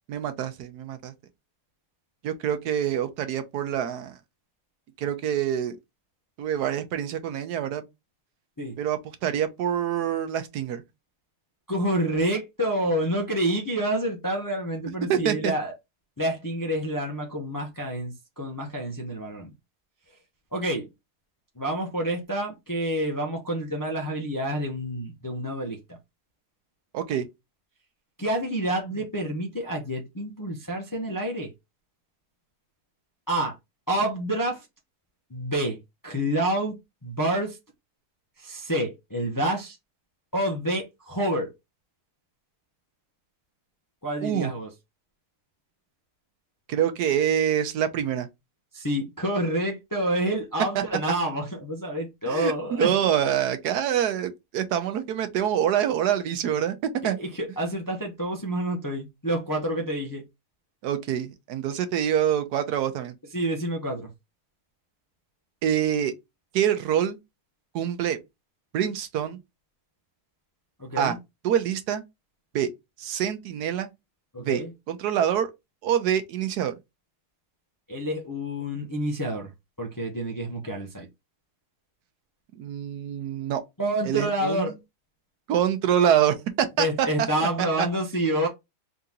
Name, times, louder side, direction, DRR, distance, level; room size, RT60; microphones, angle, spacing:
voice 1, 0.1-1.1 2.2-4.1 5.0-5.8 6.4-7.8 8.8-10.8 15.1-15.5 26.9-27.3 44.2-44.5 46.7-48.3 50.7-50.8 52.3-56.7 57.0-57.2 60.8-63.1 65.6-66.1 66.5-67.2 67.7-68.2 68.7-69.4 71.0-71.2 71.4-72.0 72.5-72.7 73.0-73.9 74.4-75.5 75.8-76.7 82.6-83.6 84.0-84.7 85.5-87.3 87.6-87.9, right 9 dB, 85° right, 1.3 m, -26 dB
voice 2, 11.7-15.7 16.2-19.5 20.5-20.9 21.6-26.0 28.2-31.5 33.3-33.6 33.9-34.7 35.3-35.8 36.0-37.6 38.4-39.8 40.3-41.5 44.0-44.7 48.7-52.9 57.0-60.2 63.3-64.1 70.8-71.2 74.3-74.7 77.9-79.5 79.8-81.1 83.8-84.8 86.8-88.5, right 1 dB, 20° left, 0.5 m, -28 dB
3.8 x 2.9 x 3.6 m
omnidirectional pair, 1.7 m